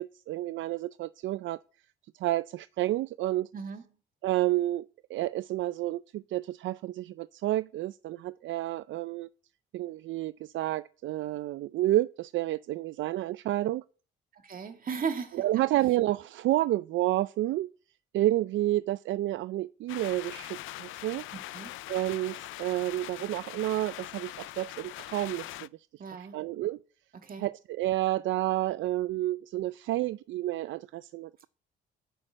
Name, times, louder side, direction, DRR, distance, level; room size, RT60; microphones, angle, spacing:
voice 1, 0.0-1.6 2.1-3.5 4.2-9.3 9.7-13.8 15.3-17.7 18.1-21.2 21.9-26.8 27.4-31.5, right 15 dB, 75° right, 0.4 m, -30 dB
voice 2, 14.3-15.6 21.5-21.7 26.0-26.4 27.1-27.5, right 5 dB, 45° right, 2.1 m, -36 dB
sound 1, 19.9-25.7, left 16 dB, 85° left, 0.4 m, -42 dB
9.2 x 6.2 x 7.6 m
cardioid pair, 90°, 20 cm